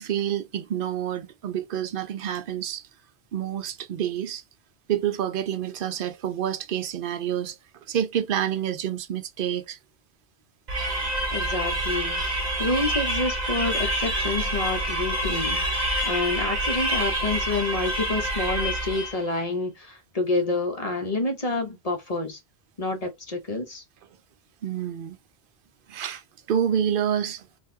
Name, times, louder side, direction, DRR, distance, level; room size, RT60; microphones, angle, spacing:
voice 1, 0.0-2.8 3.3-4.4 4.9-7.6 7.9-9.8 24.6-25.2 25.9-26.2 26.5-27.5, right 9 dB, 60° right, 0.7 m, -28 dB
sound 1, 10.7-19.3, right 1 dB, 40° right, 1.1 m, -27 dB
voice 2, 11.3-12.2 12.6-15.7 16.0-22.4 22.8-23.8, left 2 dB, 40° left, 0.8 m, -28 dB
3.9 x 2.5 x 2.6 m
omnidirectional pair, 1.1 m